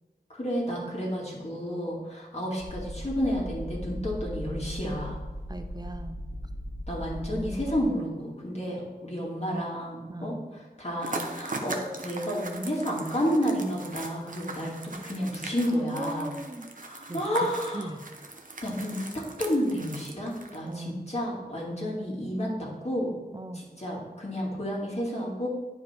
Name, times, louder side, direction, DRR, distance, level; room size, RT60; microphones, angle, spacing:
voice 1, 0.3-5.2 6.9-10.4 10.8-16.3 16.8-17.9 18.6-23.1 23.8-25.5, equal, 40° left, -4 dB, 2.3 m, -31 dB
sound 1, 2.6-7.9, equal, 55° left, 1.0 m, -37 dB
voice 2, 5.5-6.2 10.1-10.5 15.8-16.7 17.1-17.5 17.7-18.0 20.6-21.0 23.3-23.6, right 1 dB, 25° right, 7 dB, 0.7 m, -38 dB
sound 2, 11.0-20.7, right 2 dB, 55° right, 0.9 m, -40 dB
9.3 x 5.0 x 4.4 m, 1.2 s
wide cardioid pair, 60°, 16 cm